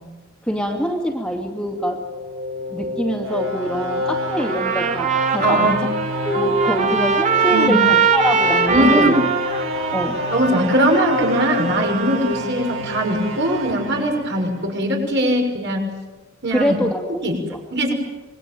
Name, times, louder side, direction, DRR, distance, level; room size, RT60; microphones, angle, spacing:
voice 1, 0.4-2.0 2.7-5.8 6.2-9.1 9.9-10.2 11.7-11.8 16.5-17.6, equal, 5° left, 2 dB, 2.4 m, -24 dB
sound 1, 1.8-14.8, equal, 80° right, 4.2 m, -28 dB
Trumpet, 4.4-12.4, right 5 dB, 35° right, 2.4 m, -22 dB
voice 2, 5.4-5.8 6.8-6.9 7.5-7.8 8.7-9.1 10.3-15.9 16.4-16.8 17.2-17.4 17.7-17.9, right 1 dB, 60° right, 2 dB, 6.4 m, -20 dB
26.5 x 22.0 x 9.3 m, 1.2 s
head